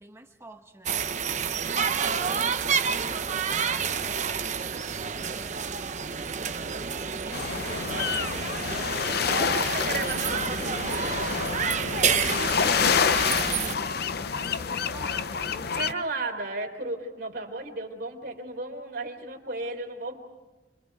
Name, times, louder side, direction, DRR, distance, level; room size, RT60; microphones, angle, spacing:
voice 1, 0.0-1.7 2.1-6.5 7.1-10.0 13.4-16.1, right 1 dB, 15° right, 3 dB, 1.0 m, -48 dB
sound 1, 0.9-13.8, right 6 dB, 40° right, 0.8 m, -29 dB
voice 2, 2.2-2.7 9.6-11.2 15.7-20.2, right 2 dB, 60° right, 1 dB, 3.4 m, -34 dB
sound 2, 7.3-15.9, left 6 dB, 60° left, 0.7 m, -28 dB
30.0 x 24.5 x 4.7 m, 1.1 s
head